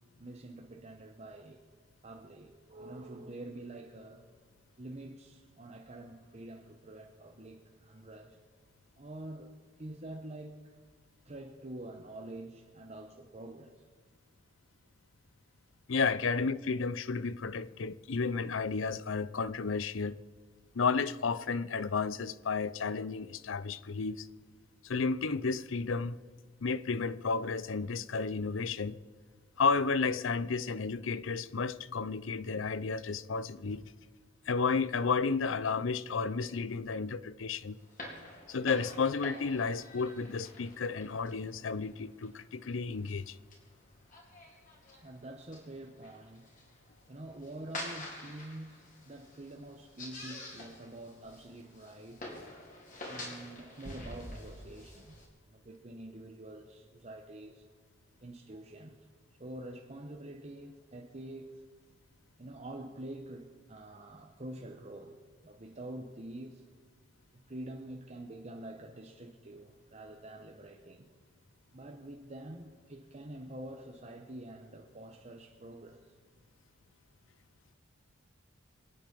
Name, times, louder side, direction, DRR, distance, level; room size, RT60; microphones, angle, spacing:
voice 1, 0.2-1.6 2.0-4.2 4.8-8.4 9.0-10.7 11.2-13.9 44.9-46.5 47.1-52.3 53.0-57.6 58.2-59.1 59.4-61.6 62.4-66.6 67.5-71.1 71.7-76.1, right 1 dB, 35° right, 1.0 m, -46 dB
voice 2, 15.9-20.2 20.7-24.3 24.8-26.2 26.6-29.0 29.6-33.9 34.5-37.8 38.5-43.4, left 4 dB, 80° left, 0.6 m, -32 dB
sound 1, 37.8-55.2, left 1 dB, 45° left, 4.2 m, -47 dB
26.5 x 9.2 x 5.3 m
head